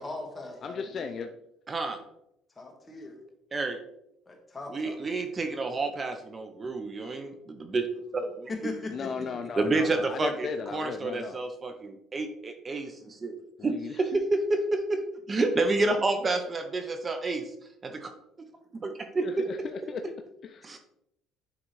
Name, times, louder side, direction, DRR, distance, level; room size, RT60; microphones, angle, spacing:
voice 1, 0.0-1.1 2.5-3.2 4.3-5.2 8.5-9.1, left 3 dB, 15° left, 1 dB, 1.5 m, -39 dB
voice 2, 0.6-1.3 8.9-11.4 13.6-14.2 19.2-20.0 20.4-20.7, left 5 dB, 40° left, 7 dB, 0.4 m, -36 dB
voice 3, 1.7-2.0 3.5-3.8 4.7-7.9 8.1-8.5 9.6-13.4 13.6-15.0 15.3-17.4 17.8-18.1 18.7-19.5 20.6-20.8, right 3 dB, 25° right, 7 dB, 0.5 m, -29 dB
9.7 x 3.8 x 3.1 m, 0.81 s
cardioid pair, 125°, 0 cm